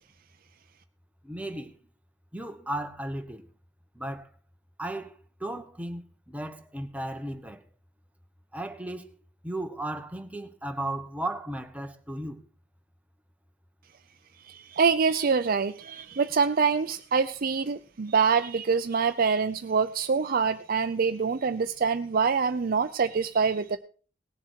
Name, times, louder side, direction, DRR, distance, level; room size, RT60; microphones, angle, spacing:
voice 1, 1.2-1.8 2.3-3.4 3.9-4.3 4.8-5.1 5.4-7.6 8.5-9.1 9.4-12.4, right 1 dB, 10° right, 1.1 m, -35 dB
voice 2, 14.5-23.8, right 5 dB, 50° right, 0.6 m, -25 dB
18.5 x 7.3 x 4.5 m
head